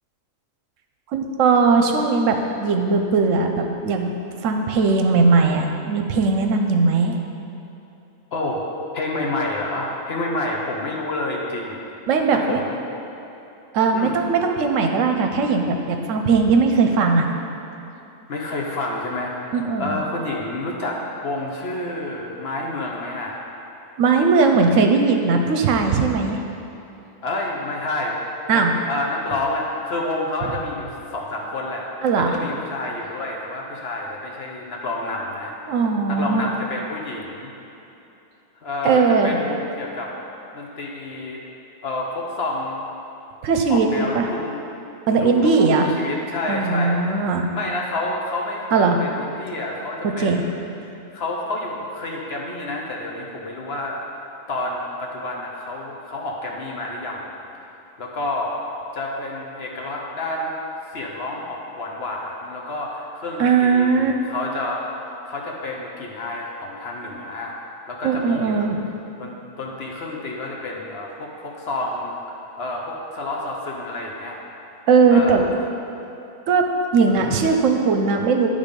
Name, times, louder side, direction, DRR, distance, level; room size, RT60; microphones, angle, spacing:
voice 1, 1.1-4.1 4.4-7.2 12.1-12.6 13.7-17.3 19.5-20.0 24.0-26.4 28.5-28.7 32.0-32.4 35.7-36.5 38.8-39.4 43.4-44.2 45.1-45.9 46.5-47.5 48.7-49.0 50.2-50.4 63.4-64.1 68.0-68.8 74.9-75.4 76.5-76.6 76.9-78.5, right 4 dB, 75° right, 4 dB, 1.0 m, -19 dB
voice 2, 8.9-11.8 12.3-12.8 13.9-14.2 18.3-19.3 19.8-23.4 27.2-28.2 28.5-31.9 32.1-35.5 36.1-37.5 38.5-40.1 40.5-41.4 41.8-42.9 43.7-44.6 45.2-47.0 47.5-50.6 51.1-54.0 54.5-57.3 58.0-58.6 58.9-60.5 60.9-65.0 65.3-67.6 67.9-68.7 69.2-74.4 75.1-75.5 77.2-77.4, left 2 dB, 55° left, -1 dB, 1.0 m, -29 dB
10.0 x 3.6 x 5.2 m, 2.9 s
omnidirectional pair, 1.4 m